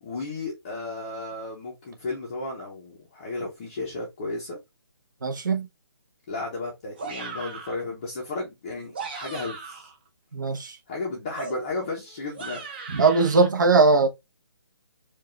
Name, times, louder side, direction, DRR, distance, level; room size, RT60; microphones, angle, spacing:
voice 1, 0.0-4.6 6.3-9.9 10.9-12.6, left 3 dB, 15° left, 0.6 m, -34 dB
voice 2, 5.2-5.7 10.3-10.8 12.9-14.1, right 3 dB, 50° right, 0.9 m, -20 dB
sound 1, 7.0-7.8 8.8-10.0 11.4-13.5, right 4 dB, 25° right, 0.6 m, -38 dB
4.6 x 2.3 x 2.9 m
hypercardioid pair, 175°, 13 cm